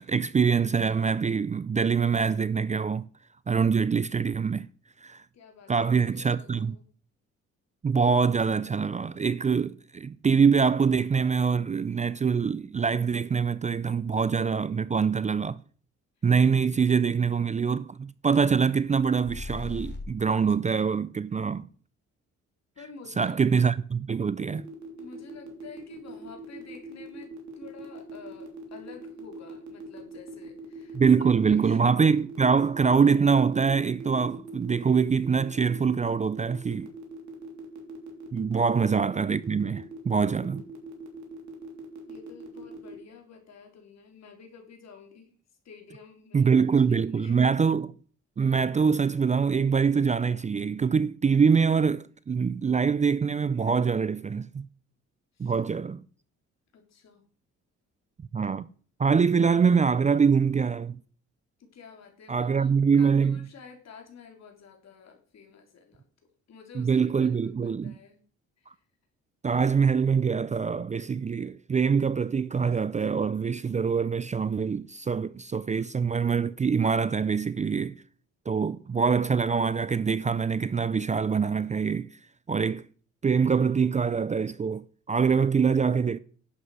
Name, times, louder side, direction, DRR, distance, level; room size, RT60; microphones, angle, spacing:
voice 1, 0.0-3.1 3.5-4.7 5.0-5.2 5.7-6.8 7.8-15.6 16.2-21.7 23.2-24.6 30.9-36.9 38.3-40.6 46.3-47.9 48.4-54.6 55.4-56.0 58.3-58.7 59.0-61.0 62.3-63.5 66.7-67.9 69.4-78.0 78.5-82.1 82.5-82.9 83.2-86.2, right 6 dB, 25° right, 0.5 m, -24 dB
voice 2, 5.3-6.9 22.8-23.4 25.0-31.8 38.5-38.6 42.1-45.3 45.6-46.5 46.9-47.4 55.4-55.5 56.7-57.3 61.6-66.1 66.5-68.2 68.6-68.7, left 5 dB, 60° left, 3.6 m, -50 dB
sound 1, 19.2-20.5, left 3 dB, 35° left, 2.4 m, -38 dB
sound 2, 24.5-42.9, right 3 dB, 70° right, 3.3 m, -42 dB
11.0 x 7.9 x 4.9 m
cardioid pair, 90°, 30 cm